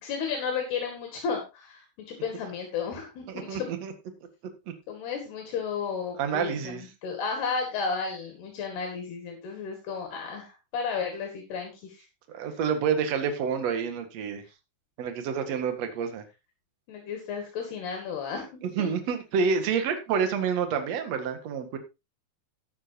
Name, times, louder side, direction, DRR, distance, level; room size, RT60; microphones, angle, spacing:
voice 1, 0.0-3.7 4.9-6.7 7.0-12.0 16.9-18.5 18.8-18.9, left 5 dB, 70° left, 2 dB, 4.1 m, -33 dB
voice 2, 3.3-3.9 6.2-6.8 12.3-14.4 15.0-16.2 18.8-21.8, right 6 dB, 55° right, 7 dB, 2.2 m, -28 dB
13.5 x 10.5 x 2.8 m, 0.26 s
omnidirectional pair, 4.9 m